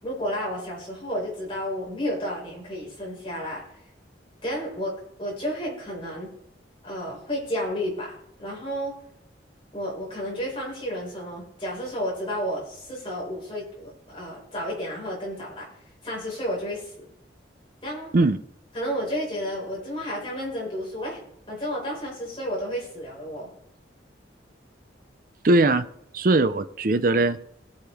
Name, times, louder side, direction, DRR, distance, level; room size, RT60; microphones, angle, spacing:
voice 1, 0.0-3.6 4.4-4.9 5.2-6.3 6.8-9.0 9.7-15.7 16.0-17.1 17.8-18.2 18.7-21.2 21.5-23.5, equal, 30° left, -5 dB, 4.8 m, -31 dB
voice 2, 25.4-25.8 26.1-27.4, right 2 dB, 50° right, 10 dB, 0.5 m, -20 dB
18.5 x 6.6 x 3.5 m, 0.75 s
head